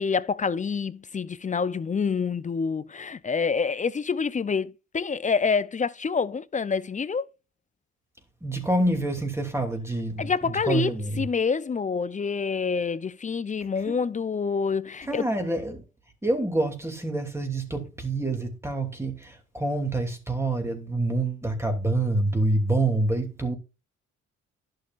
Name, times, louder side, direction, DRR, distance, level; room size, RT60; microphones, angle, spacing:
voice 1, 0.0-7.3 10.2-15.3, left 5 dB, 25° left, 0.5 m, -27 dB
voice 2, 8.4-11.2 13.9-14.0 15.1-15.8 16.2-23.6, right 2 dB, 10° right, 2.6 m, -27 dB
11.5 x 6.7 x 2.5 m
cardioid pair, 90°, 30 cm